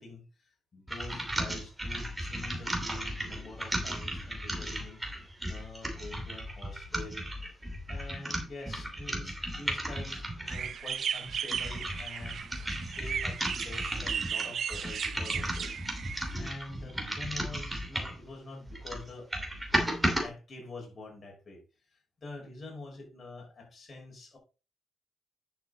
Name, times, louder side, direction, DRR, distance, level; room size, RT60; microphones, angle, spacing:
voice 1, 0.0-5.0 5.5-7.2 7.9-12.4 12.9-15.8 16.4-19.3 20.1-21.6 21.9-24.4, left 2 dB, 35° left, 0 dB, 5.1 m, -46 dB
sound 1, 0.9-10.7 11.3-18.2 18.7-20.3, right 1 dB, 10° right, 2.9 m, -35 dB
sound 2, 10.5-16.3, right 8 dB, 60° right, 0.6 m, -36 dB
10.0 x 6.4 x 4.0 m, 0.32 s
cardioid pair, 90°, 0 cm